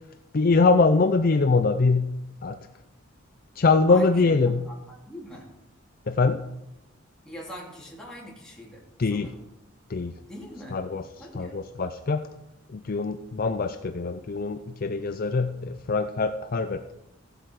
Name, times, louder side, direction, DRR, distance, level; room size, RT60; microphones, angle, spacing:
voice 1, 0.3-2.1 2.4-2.6 3.6-4.6 6.1-6.4 9.0-9.3 9.9-10.1 10.7-11.0 11.3-12.2 12.7-16.9, left 3 dB, 45° left, 8 dB, 0.5 m, -23 dB
voice 2, 3.9-4.3 4.6-4.8 5.0-5.5 7.2-8.8 9.1-9.4 10.3-10.8 11.2-11.6, equal, 5° left, -5 dB, 3.1 m, -42 dB
16.0 x 7.9 x 4.8 m, 0.92 s
head